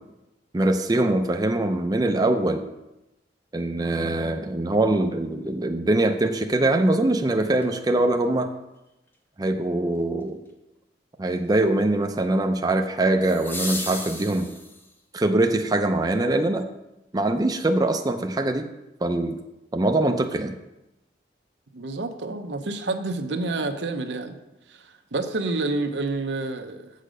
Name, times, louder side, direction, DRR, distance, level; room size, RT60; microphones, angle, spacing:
voice 1, 0.5-2.7 3.5-8.5 9.4-10.4 11.2-14.5 15.1-16.6 17.1-18.7 19.0-19.4 19.7-20.6, right 2 dB, 20° right, 5 dB, 0.5 m, -23 dB
sound 1, 7.6-7.7 13.2-15.0 17.2-17.3, left 2 dB, 10° left, 0.7 m, -34 dB
voice 2, 21.7-24.4 24.7-26.9, right 2 dB, 80° right, 7 dB, 0.7 m, -29 dB
7.5 x 6.5 x 5.1 m, 0.96 s
head